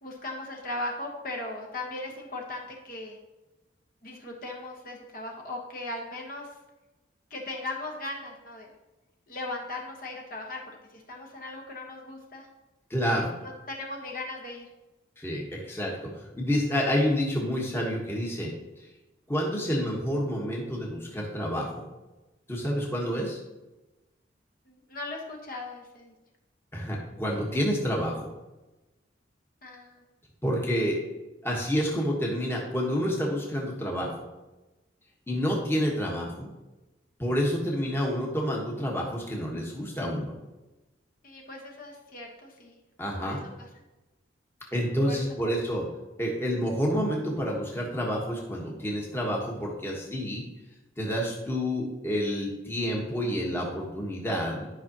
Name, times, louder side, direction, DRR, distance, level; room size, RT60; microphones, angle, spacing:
voice 1, 0.0-3.2 4.0-6.5 7.3-8.7 9.3-10.6 10.9-12.5 13.4-14.7 24.7-26.1 29.6-30.0 41.2-42.8 43.2-43.4 45.1-45.5, left 2 dB, 45° left, 0 dB, 1.2 m, -38 dB
voice 2, 12.9-13.3 15.2-18.5 18.8-18.9 19.3-21.8 22.5-23.4 26.7-28.3 30.4-31.0 31.4-34.2 35.3-36.5 37.2-40.3 43.0-43.4 44.7-45.8 46.2-50.4 51.0-54.7, equal, 10° left, -2 dB, 1.2 m, -29 dB
11.5 x 5.6 x 2.9 m, 1.1 s
head